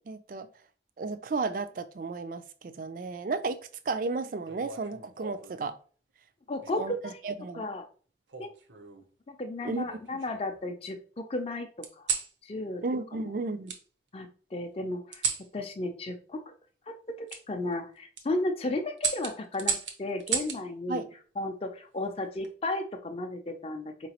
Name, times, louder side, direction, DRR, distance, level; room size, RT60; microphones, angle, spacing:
voice 1, 0.1-0.5 1.0-3.6 3.9-5.7 6.8-7.6 9.6-10.0 12.8-13.7 20.9-21.1, right 3 dB, 50° right, 0.3 m, -33 dB
sound 1, 4.5-5.6 6.6-7.0 8.3-9.1 9.7-10.6 11.8-12.3 13.7-13.8 15.1-15.5 17.3-17.4 18.0-18.2 19.0-20.6 22.1-22.5, right 6 dB, 85° right, 0.7 m, -34 dB
voice 2, 6.5-7.2 7.5-7.9 8.4-8.5 9.3-12.1 12.4-12.8 13.2-13.3 14.1-15.2 15.5-16.5 16.9-21.0 21.4-24.1, left 2 dB, 35° left, 0.4 m, -34 dB
4.6 x 2.9 x 2.9 m
head